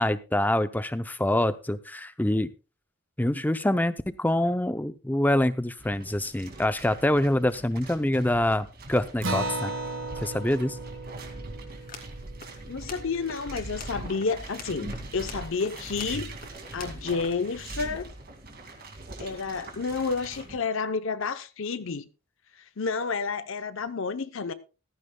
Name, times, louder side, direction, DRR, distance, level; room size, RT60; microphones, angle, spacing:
voice 1, 0.0-2.5 3.2-9.7 10.2-10.8, left 1 dB, 10° left, 0.5 m, -25 dB
sound 1, 5.8-20.6, right 2 dB, 40° right, 2.2 m, -42 dB
Acoustic guitar, 9.2-14.1, right 2 dB, 60° right, 1.5 m, -36 dB
sound 2, 11.7-18.0, left 4 dB, 40° left, 2.5 m, -48 dB
voice 2, 12.7-16.3 16.7-18.1 19.2-22.1 22.6-24.5, left 4 dB, 60° left, 0.7 m, -30 dB
14.5 x 14.5 x 2.2 m
head